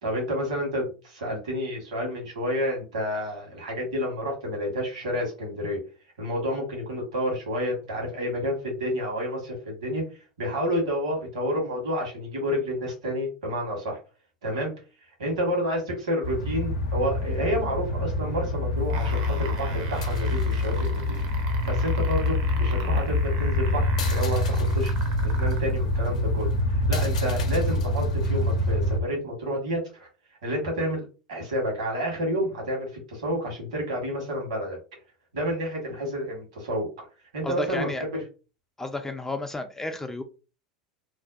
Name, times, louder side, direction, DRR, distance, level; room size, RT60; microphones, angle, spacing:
voice 1, 0.0-5.8 6.2-10.0 10.4-14.0 14.4-14.7 15.2-24.9 25.4-30.1 30.4-34.8 35.3-36.9 37.3-38.2, equal, 75° right, 0 dB, 1.3 m, -29 dB
sound 1, 16.2-29.0, left 1 dB, 80° left, 0.5 m, -26 dB
sound 2, 18.8-25.7 26.6-26.7, right 5 dB, 60° right, 0.7 m, -40 dB
voice 2, 37.4-38.0 38.8-40.2, left 2 dB, 10° left, 6 dB, 0.3 m, -32 dB
2.6 x 2.2 x 2.4 m, 0.33 s
hypercardioid pair, 85°, 4 cm